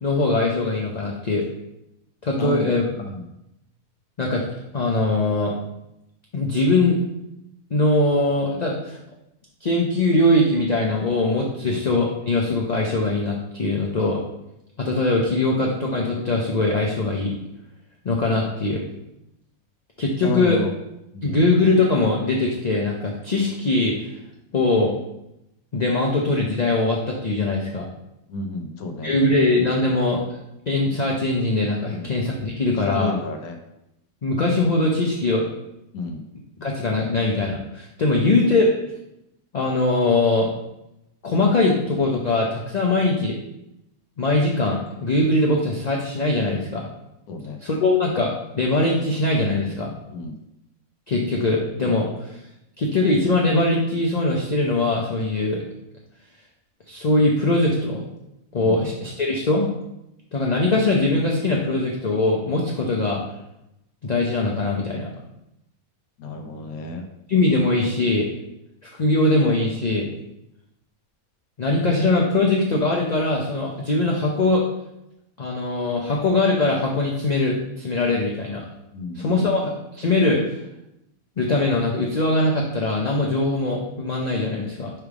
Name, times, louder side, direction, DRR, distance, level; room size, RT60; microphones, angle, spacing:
voice 1, 0.0-1.4 2.2-2.8 4.2-4.4 4.7-5.5 6.3-7.0 7.7-9.0 9.6-14.2 14.8-17.3 18.0-18.8 20.0-20.6 21.2-24.0 24.5-24.9 25.7-27.8 29.0-30.2 30.7-33.1 34.2-35.4 36.6-38.7 39.5-40.5 41.2-43.4 44.2-46.9 47.6-49.9 51.1-52.3 52.8-55.6 56.9-58.0 58.5-59.7 60.3-63.2 64.0-65.1 67.3-68.3 68.8-70.1 71.6-74.6 75.4-78.6 79.1-80.4 81.4-84.9, left 2 dB, 45° left, -1 dB, 0.5 m, -21 dB
voice 2, 2.4-2.7 3.0-3.3 11.6-11.8 20.2-20.7 21.1-21.4 28.3-29.5 31.9-32.1 32.8-33.6 35.9-36.2 47.3-47.6 50.1-50.4 58.6-58.8 66.2-67.1 78.9-79.5, left 2 dB, 75° left, 4 dB, 1.2 m, -32 dB
5.9 x 3.5 x 4.7 m, 0.86 s
omnidirectional pair, 1.6 m